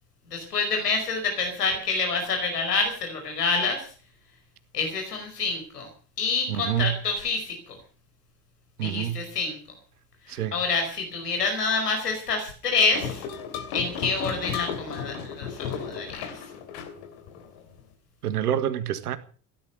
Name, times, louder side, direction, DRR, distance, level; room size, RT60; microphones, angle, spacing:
voice 1, 0.3-3.9 4.7-5.9 6.2-7.8 8.8-9.6 10.3-13.2 13.7-16.4, left 4 dB, 75° left, 5.1 m, -27 dB
voice 2, 6.5-6.9 8.8-9.2 10.3-10.5 18.2-19.2, right 10 dB, 70° right, 1.7 m, -27 dB
sound 1, 12.9-17.8, left 7 dB, 55° left, 3.1 m, -34 dB
17.0 x 12.0 x 6.7 m
figure-of-eight pair, 65°, 47 cm